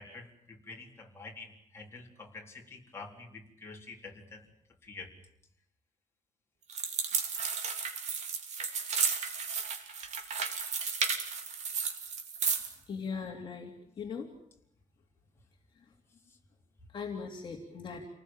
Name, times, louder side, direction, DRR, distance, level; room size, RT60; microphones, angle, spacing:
voice 1, 0.0-4.5 4.8-5.1, left 3 dB, 20° left, -1 dB, 4.1 m, -47 dB
sound 1, 6.7-12.7, right 6 dB, 60° right, 3.3 m, -33 dB
voice 2, 12.9-14.3 15.8-15.9 16.9-18.1, left 5 dB, 40° left, 1 dB, 3.0 m, -39 dB
28.5 x 19.5 x 9.0 m, 0.76 s
wide cardioid pair, 180°, 13 cm